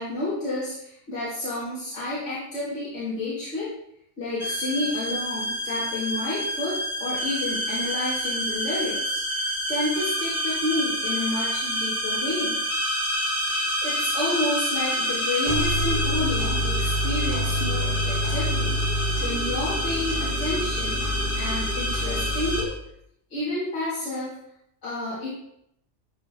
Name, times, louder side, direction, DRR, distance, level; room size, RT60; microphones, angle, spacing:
voice 1, 0.0-3.7 4.2-12.6 13.5-21.0 21.3-22.7 23.3-24.3 24.8-25.3, left 2 dB, 65° left, -11 dB, 2.7 m, -30 dB
sound 1, 4.4-22.6, equal, 40° left, 2.0 m, -26 dB
11.5 x 4.0 x 3.6 m, 0.74 s
omnidirectional pair, 1.3 m